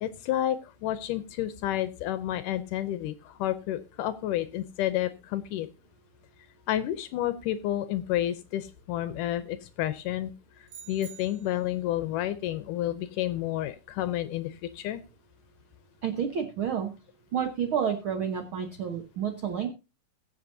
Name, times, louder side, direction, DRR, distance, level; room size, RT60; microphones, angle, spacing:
voice 1, 0.0-5.7 6.7-10.3 10.9-15.0, left 12 dB, 80° left, 12 dB, 2.0 m, -30 dB
sound 1, 10.7-11.8, right 8 dB, 60° right, 2.2 m, -48 dB
voice 2, 16.0-16.9 17.3-19.7, right 8 dB, 90° right, 5 dB, 1.1 m, -30 dB
22.0 x 7.6 x 2.7 m, 0.29 s
omnidirectional pair, 4.2 m